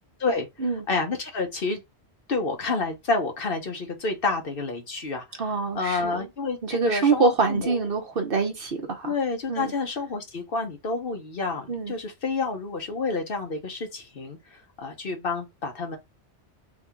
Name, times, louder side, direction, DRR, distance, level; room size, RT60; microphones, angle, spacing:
voice 1, 0.9-1.8 2.3-5.4 5.7-6.6 6.8-7.8 9.0-16.0, left 3 dB, 50° left, 1.1 m, -29 dB
voice 2, 5.4-6.3 6.6-9.1 9.5-9.7 11.7-11.9, right 4 dB, 55° right, 0.9 m, -25 dB
3.6 x 2.8 x 3.5 m
omnidirectional pair, 1.2 m